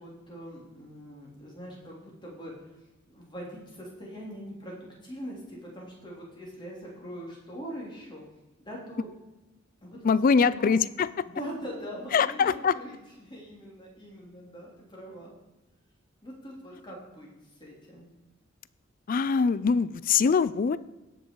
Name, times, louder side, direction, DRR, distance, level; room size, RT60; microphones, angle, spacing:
voice 1, 0.0-2.5 3.0-8.2 8.6-9.1 9.8-10.7 11.2-15.3 16.2-17.3 17.6-18.1, equal, 25° left, -3 dB, 3.4 m, -42 dB
voice 2, 10.0-11.1 12.1-12.8 19.1-20.8, left 5 dB, 40° left, 17 dB, 0.3 m, -23 dB
17.5 x 6.4 x 4.7 m, 1.1 s
head